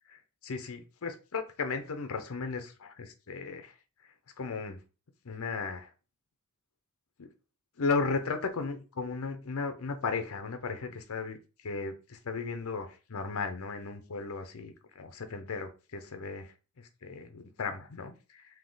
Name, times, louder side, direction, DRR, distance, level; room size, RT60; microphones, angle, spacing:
voice 1, 0.4-3.8 4.4-4.8 5.2-5.9 7.2-7.3 7.8-18.5, left 4 dB, 65° left, 8 dB, 0.6 m, -35 dB
3.6 x 2.8 x 3.9 m, 0.33 s
head